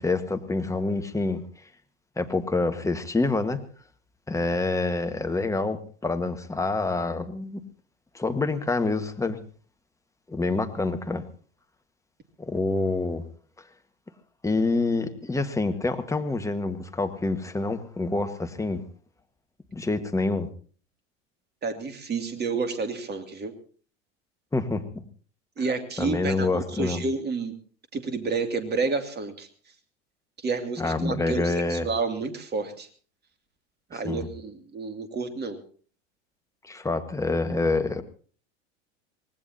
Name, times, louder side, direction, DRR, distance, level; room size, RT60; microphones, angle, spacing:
voice 1, 0.0-1.4 2.2-3.6 4.3-7.6 8.1-9.4 10.3-11.2 12.4-13.2 14.4-18.8 19.7-20.5 24.5-25.0 26.0-27.0 30.8-31.9 33.9-34.3 36.6-38.0, left 3 dB, 10° left, 7 dB, 1.6 m, -27 dB
voice 2, 21.6-23.5 25.6-27.5 27.9-29.5 30.4-32.9 33.9-35.6, right 4 dB, 25° right, 8 dB, 2.6 m, -30 dB
24.5 x 19.0 x 2.9 m, 0.42 s
hypercardioid pair, 85°, 38 cm